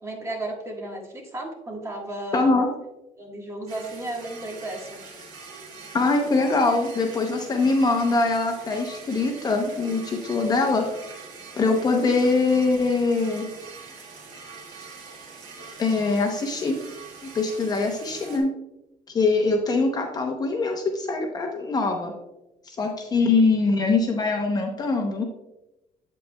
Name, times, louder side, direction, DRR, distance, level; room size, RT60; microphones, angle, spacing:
voice 1, 0.0-2.5 3.2-5.0, right 1 dB, 20° right, 0 dB, 1.5 m, -34 dB
voice 2, 2.3-2.7 5.9-10.9 11.6-13.5 15.8-16.8 17.2-18.5 19.1-22.1 22.7-25.2, left 3 dB, 25° left, 2 dB, 0.7 m, -23 dB
sound 1, 3.7-18.4, right 4 dB, 65° right, 2.6 m, -43 dB
8.3 x 8.1 x 2.2 m, 0.93 s
cardioid pair, 165°, 15 cm